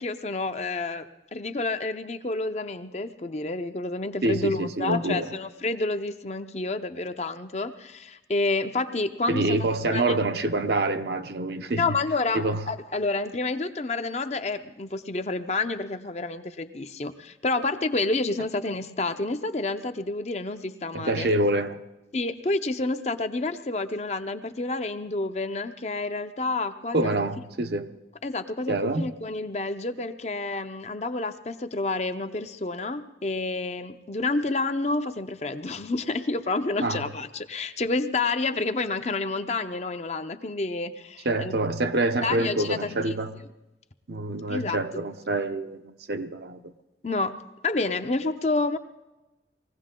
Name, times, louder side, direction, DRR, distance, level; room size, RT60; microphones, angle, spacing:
voice 1, 0.0-10.2 11.8-21.3 22.1-27.3 28.2-41.6 42.2-43.2 44.5-44.8 47.0-48.8, left 3 dB, 40° left, 0.6 m, -29 dB
voice 2, 4.2-5.3 9.3-12.0 12.3-12.6 20.9-21.8 26.9-27.9 28.7-29.1 36.8-37.0 41.2-43.3 44.1-46.7, right 2 dB, 65° right, 0.8 m, -26 dB
21.0 x 16.0 x 3.7 m
head